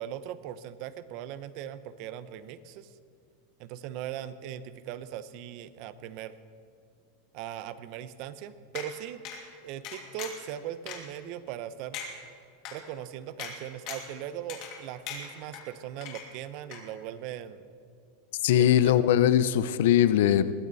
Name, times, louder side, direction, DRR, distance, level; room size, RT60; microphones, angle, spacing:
voice 1, 0.0-3.0 3.6-6.4 7.3-9.2 9.6-12.0 12.7-17.6 18.6-19.0, right 11 dB, 45° right, 14 dB, 0.8 m, -39 dB
sound 1, 8.7-8.9 9.2-9.4 9.8-10.4 10.9-11.0 11.5-11.6 11.9-12.1 12.6-12.7 13.4-13.5 13.9-14.1 14.5-14.8 15.1-15.6 16.0-16.5 16.7-16.8, left 8 dB, 45° left, 2.8 m, -39 dB
voice 2, 18.4-20.5, left 10 dB, 70° left, 14 dB, 0.7 m, -21 dB
21.0 x 15.0 x 4.1 m, 2.4 s
supercardioid pair, 160°, 0 cm